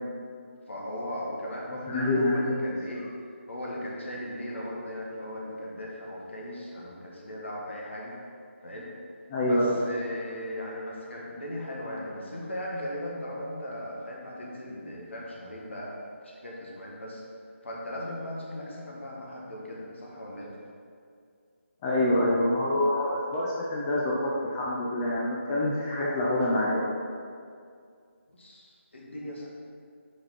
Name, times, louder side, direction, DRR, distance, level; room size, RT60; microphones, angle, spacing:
voice 1, 0.7-3.1 3.5-8.2 8.6-8.9 9.4-16.0 16.2-17.2 17.6-20.6 28.3-29.5, left 1 dB, 65° left, -3 dB, 1.6 m, -38 dB
voice 2, 1.9-2.6 9.3-9.8 21.8-26.8, left 1 dB, 15° left, -6 dB, 0.5 m, -26 dB
4.7 x 4.7 x 5.6 m, 2.3 s
figure-of-eight pair, 155°, 7 cm